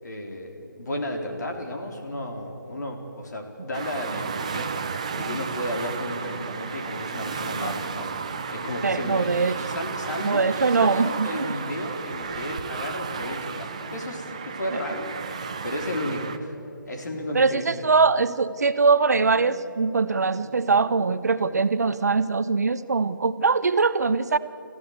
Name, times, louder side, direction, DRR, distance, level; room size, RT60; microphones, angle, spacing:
voice 1, 0.0-4.7 5.2-8.1 8.5-9.3 9.7-16.5 16.9-17.9, left 1 dB, 55° left, 2 dB, 3.7 m, -33 dB
sound 1, 3.7-16.4, right 5 dB, 20° right, 0.5 m, -33 dB
sound 2, 5.0-22.4, right 1 dB, ahead, 6.5 m, -47 dB
voice 2, 8.8-9.5 10.2-11.3 14.7-14.8 17.3-24.4, right 4 dB, 50° right, 13 dB, 0.7 m, -22 dB
26.0 x 15.0 x 8.0 m, 2.9 s
hypercardioid pair, 175°, 11 cm